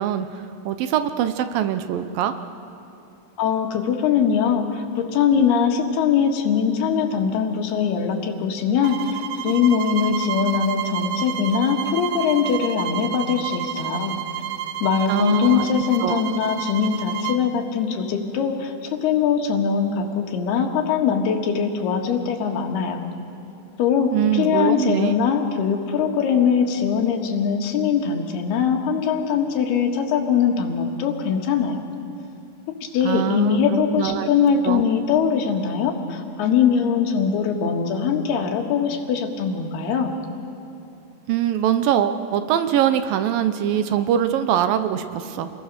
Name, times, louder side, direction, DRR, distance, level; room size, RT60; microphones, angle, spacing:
voice 1, 0.0-2.3 15.1-15.7 16.0-16.2 24.1-25.2 33.0-34.3 34.6-34.8 41.3-45.5, right 10 dB, 75° right, 10 dB, 2.4 m, -23 dB
voice 2, 3.4-14.2 14.8-23.1 23.8-31.8 32.8-40.2, left 7 dB, 85° left, 3 dB, 3.6 m, -22 dB
sound 1, 8.8-17.4, right 11 dB, 90° right, 2.8 m, -30 dB
28.0 x 21.0 x 6.7 m, 2.9 s
omnidirectional pair, 4.5 m